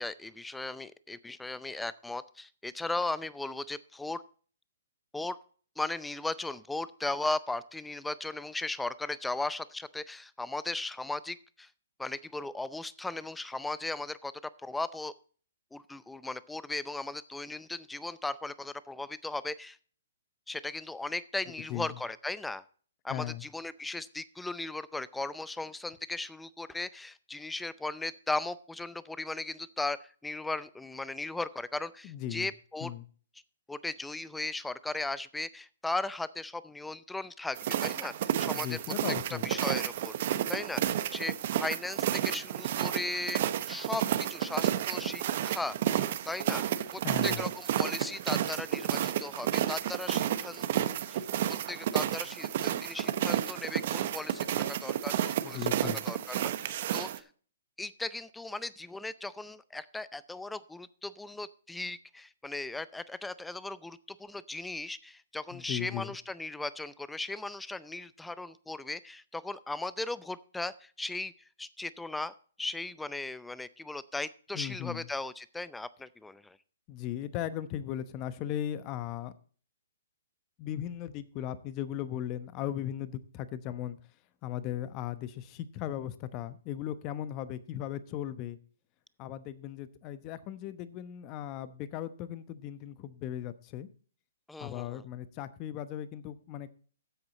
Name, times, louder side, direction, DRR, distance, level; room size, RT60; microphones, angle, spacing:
voice 1, 0.0-4.2 5.1-5.4 5.8-11.7 12.0-14.3 14.6-15.1 15.7-19.8 20.5-22.6 23.0-32.9 33.7-38.8 39.3-45.8 46.2-46.6 46.9-50.7 51.1-51.2 51.7-55.7 56.0-57.2 57.8-71.3 71.6-72.3 72.6-76.6 94.5-95.0, left 2 dB, 5° left, 17 dB, 0.5 m, -37 dB
voice 2, 23.1-23.4 32.0-32.5 32.8-33.0 38.5-39.5 47.0-47.5 55.4-56.0 65.5-66.1 74.5-75.1 76.9-79.3 80.6-84.0 84.4-88.6 89.2-93.9 94.6-96.7, left 11 dB, 30° left, 14 dB, 0.9 m, -37 dB
sound 1, 37.6-57.2, right 11 dB, 45° right, 1.0 m, -31 dB
13.0 x 7.9 x 4.1 m, 0.42 s
hypercardioid pair, 150°, 0 cm